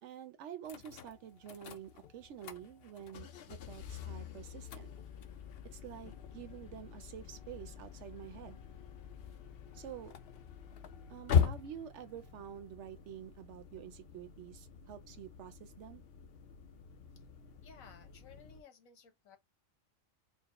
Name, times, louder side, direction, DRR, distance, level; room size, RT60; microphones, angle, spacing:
voice 1, 0.0-4.9 5.7-8.6 9.7-10.1 11.1-16.0, right 10 dB, 70° right, 0.8 m, -48 dB
sound 1, 0.6-18.6, left 7 dB, 60° left, 0.6 m, -40 dB
voice 2, 17.6-19.4, left 6 dB, 85° left, 1.4 m, -57 dB
4.5 x 2.0 x 2.9 m
omnidirectional pair, 1.4 m